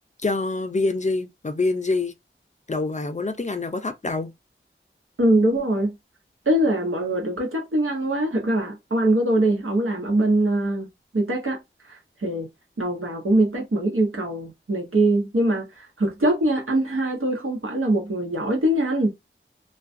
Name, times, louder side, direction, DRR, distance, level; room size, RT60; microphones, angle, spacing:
voice 1, 0.2-2.1 2.7-4.3, left 3 dB, 35° left, 0.4 m, -25 dB
voice 2, 5.2-5.9 6.5-10.9 11.1-11.6 12.2-12.5 12.8-19.1, right 1 dB, 90° right, 0.9 m, -22 dB
2.3 x 2.2 x 2.5 m
wide cardioid pair, 40°, 21 cm